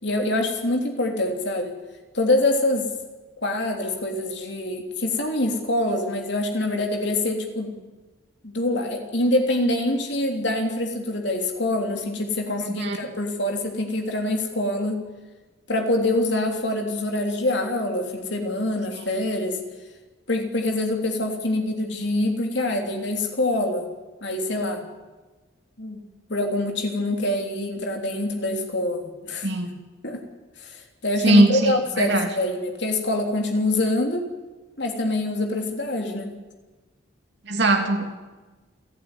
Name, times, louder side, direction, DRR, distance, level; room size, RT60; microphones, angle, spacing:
voice 1, 0.0-1.7 2.1-2.9 3.4-7.8 8.4-15.0 15.7-19.6 20.3-23.9 24.2-24.8 25.8-26.0 26.3-29.5 30.0-30.2 30.6-34.3 34.8-36.3, left 1 dB, 55° left, 3 dB, 3.5 m, -25 dB
voice 2, 12.6-13.1 29.4-29.8 31.2-32.3 37.5-38.1, right 1 dB, 55° right, 3 dB, 3.0 m, -20 dB
28.5 x 12.0 x 10.0 m, 1.2 s
head